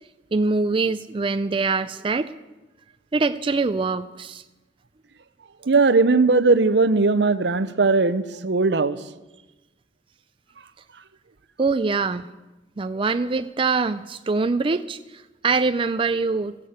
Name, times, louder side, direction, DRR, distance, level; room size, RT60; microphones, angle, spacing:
voice 1, 0.3-2.3 3.1-4.4 11.6-12.3 12.8-16.6, right 4 dB, 30° right, 10 dB, 0.4 m, -24 dB
voice 2, 5.7-9.0, right 3 dB, 65° right, 14 dB, 0.7 m, -19 dB
14.5 x 11.0 x 7.9 m, 1.1 s
head